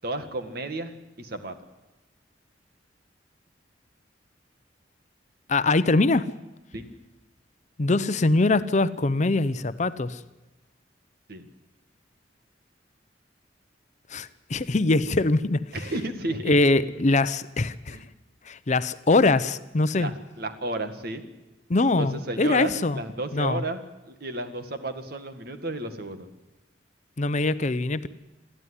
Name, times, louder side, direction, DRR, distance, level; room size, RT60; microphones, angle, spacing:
voice 1, 0.0-1.6 6.7-6.9 11.3-11.5 15.7-16.5 17.9-18.0 20.0-21.2 22.0-23.8 24.1-26.3, right 1 dB, 55° right, 8 dB, 1.9 m, -32 dB
voice 2, 5.5-6.3 7.8-10.2 14.1-15.6 16.4-18.0 18.5-20.1 21.7-23.0 23.3-23.6 27.2-28.1, left 2 dB, 40° left, 14 dB, 0.7 m, -23 dB
22.5 x 14.0 x 9.9 m, 1.1 s
head